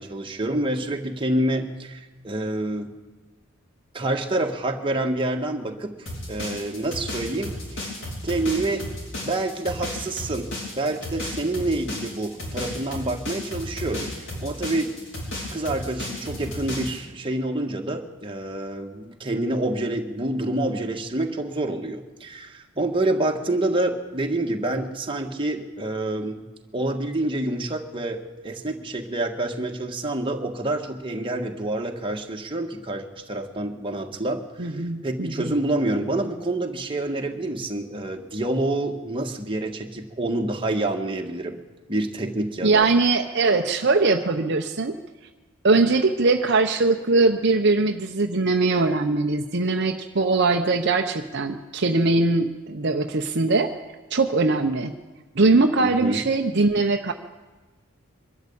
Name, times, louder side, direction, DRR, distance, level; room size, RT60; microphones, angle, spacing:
voice 1, 0.0-2.9 3.9-5.9 6.3-7.5 8.2-8.9 9.2-14.1 14.4-14.9 15.5-26.4 26.7-41.6 41.9-42.9 55.8-56.2, right 2 dB, 25° right, 2 dB, 1.8 m, -27 dB
sound 1, 6.1-17.0, left 1 dB, 60° left, 6.5 m, -33 dB
voice 2, 34.6-35.5 42.6-44.9 45.6-53.7 54.1-54.9 55.3-57.1, right 3 dB, 55° right, 4 dB, 0.9 m, -21 dB
23.5 x 13.0 x 8.7 m, 1.2 s
head